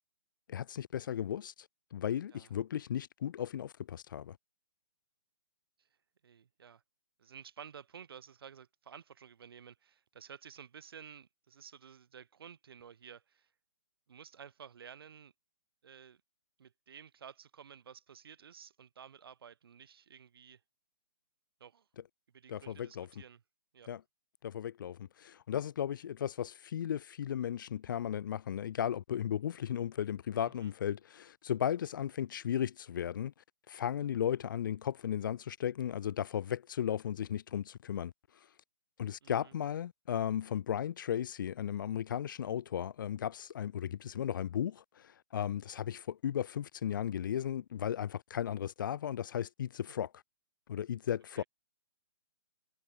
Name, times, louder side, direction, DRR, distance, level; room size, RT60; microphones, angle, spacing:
voice 1, 0.5-1.5 1.9-4.4 22.5-23.1 23.9-24.0 24.4-33.3 33.7-38.1 39.0-44.8 45.3-50.1 50.7-51.4, left 9 dB, 50° left, 0.6 m, -35 dB
voice 2, 6.2-6.8 7.2-13.5 14.1-15.3 15.8-16.2 16.6-20.6 21.6-21.9 22.3-23.4 23.7-23.9 30.4-30.7 34.0-34.1 39.2-39.6 51.3-51.5, right 7 dB, 60° right, 6.0 m, -53 dB
hypercardioid pair, 155°, 14 cm